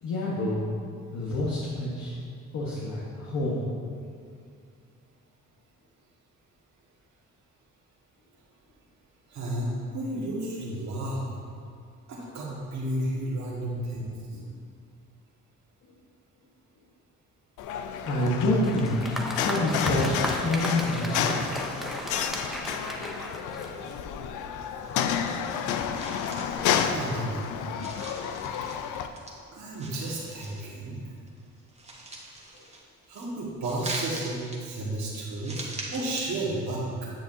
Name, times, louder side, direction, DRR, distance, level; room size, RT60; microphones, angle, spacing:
voice 1, 0.0-0.7 1.1-2.1 2.5-3.6 18.0-19.0 19.3-21.4, left 1 dB, 65° left, -6 dB, 1.3 m, -27 dB
voice 2, 9.3-11.2 12.1-14.1 26.8-27.5 29.5-31.0 33.1-37.1, right 1 dB, 65° right, -6 dB, 1.7 m, -32 dB
sound 1, 17.6-29.1, left 8 dB, 90° left, 0.5 m, -31 dB
Applause, 18.5-24.1, equal, ahead, 0.7 m, -35 dB
sound 2, 24.8-25.7 25.9-27.4 27.7-29.3 29.7-31.0 31.3-33.3 33.6-36.2, right 2 dB, 20° right, 1.3 m, -41 dB
9.2 x 7.0 x 2.7 m, 2.2 s
cardioid pair, 90°, 30 cm